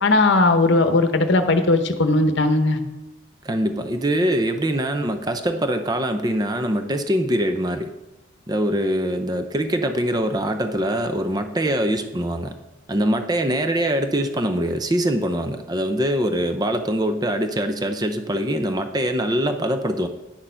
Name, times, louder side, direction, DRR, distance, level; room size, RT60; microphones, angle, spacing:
voice 1, 0.0-2.8, left 2 dB, 60° left, 7 dB, 0.9 m, -18 dB
voice 2, 3.4-7.9 8.5-12.5 12.9-20.1, right 1 dB, 20° right, 8 dB, 0.5 m, -23 dB
10.0 x 6.4 x 5.6 m, 1.1 s
head